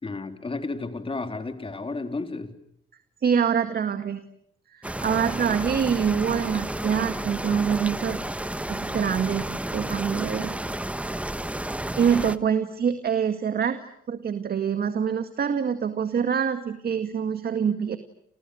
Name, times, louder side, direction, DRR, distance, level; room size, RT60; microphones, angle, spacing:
voice 1, 0.0-2.5, left 3 dB, 25° left, 7 dB, 3.4 m, -32 dB
voice 2, 3.2-4.2 4.7-8.2 8.7-10.5 12.0-13.8 14.1-18.0, right 7 dB, 50° right, 9 dB, 2.0 m, -25 dB
sound 1, 4.8-12.4, right 1 dB, 5° right, 1.1 m, -31 dB
30.0 x 29.5 x 6.4 m, 0.73 s
cardioid pair, 90°, 20 cm